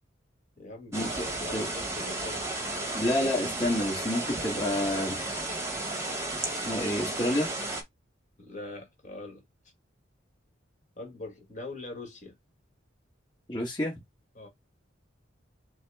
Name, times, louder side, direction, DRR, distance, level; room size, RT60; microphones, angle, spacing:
voice 1, 0.6-2.4 8.4-9.4 11.0-12.3 14.3-14.5, left 2 dB, 40° left, 1.6 m, -42 dB
sound 1, 0.9-7.8, right 2 dB, 15° right, 1.1 m, -33 dB
voice 2, 2.9-5.2 6.6-7.5 13.5-13.9, left 1 dB, 25° left, 1.3 m, -28 dB
6.0 x 2.0 x 3.5 m
head